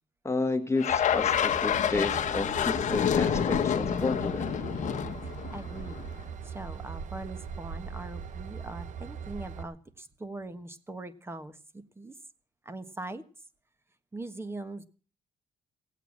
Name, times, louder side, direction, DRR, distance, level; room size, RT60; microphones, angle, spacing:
voice 1, 0.2-4.5, left 3 dB, 20° left, 7 dB, 1.5 m, -31 dB
sound 1, 0.8-6.1, left 8 dB, 60° left, 1.2 m, -28 dB
Train / Engine, 0.9-9.6, right 6 dB, 60° right, 1.1 m, -40 dB
voice 2, 5.2-6.0 6.4-12.1 12.6-13.2 14.1-14.8, right 2 dB, 15° right, 11 dB, 1.4 m, -41 dB
17.5 x 8.3 x 7.3 m, 0.40 s
cardioid pair, 105°, 14 cm